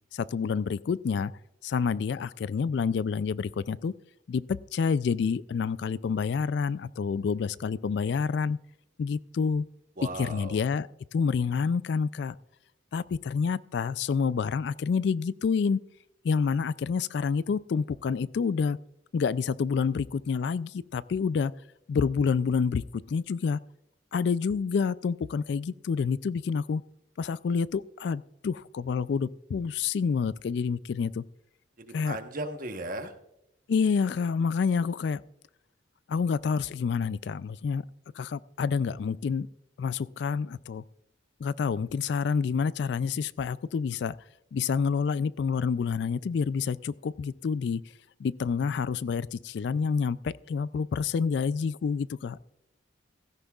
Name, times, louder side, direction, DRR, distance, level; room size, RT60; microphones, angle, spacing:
voice 1, 0.1-1.3 1.6-3.9 4.3-8.6 9.0-9.7 10.1-12.4 12.9-15.8 16.2-18.8 19.1-21.5 21.9-23.6 24.1-26.8 27.2-31.2 31.9-32.2 33.7-35.2 36.1-37.8 38.1-39.5 39.8-40.8 41.4-44.1 44.5-47.8 48.2-52.4, left 5 dB, 60° left, 18 dB, 0.3 m, -28 dB
voice 2, 10.0-10.6 31.8-33.1, right 2 dB, 45° right, 6 dB, 1.1 m, -36 dB
16.0 x 14.0 x 2.4 m, 0.85 s
head